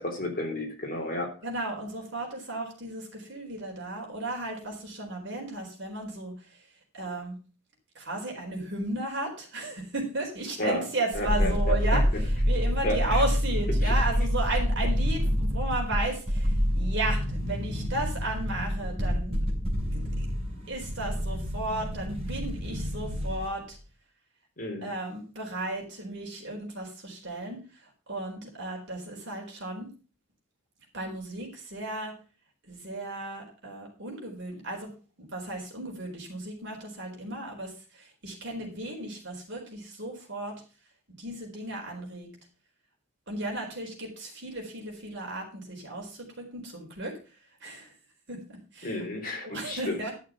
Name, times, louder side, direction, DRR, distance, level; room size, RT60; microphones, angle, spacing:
voice 1, 0.0-1.3 10.6-10.9 11.1-12.0 12.8-13.2 13.8-13.9 24.6-24.9 48.8-50.0, left 1 dB, 40° left, 2 dB, 3.3 m, -32 dB
voice 2, 1.4-6.6 6.9-7.3 7.9-20.3 20.7-23.8 24.8-29.9 30.9-32.1 32.6-34.9 35.2-40.6 41.2-42.3 43.3-47.2 47.6-47.9 48.3-49.1 49.4-50.1, right 2 dB, 55° right, 0 dB, 4.3 m, -35 dB
sound 1, 11.1-23.5 23.8-23.9, equal, 30° right, 4.0 m, -27 dB
12.0 x 6.6 x 6.1 m, 0.36 s
head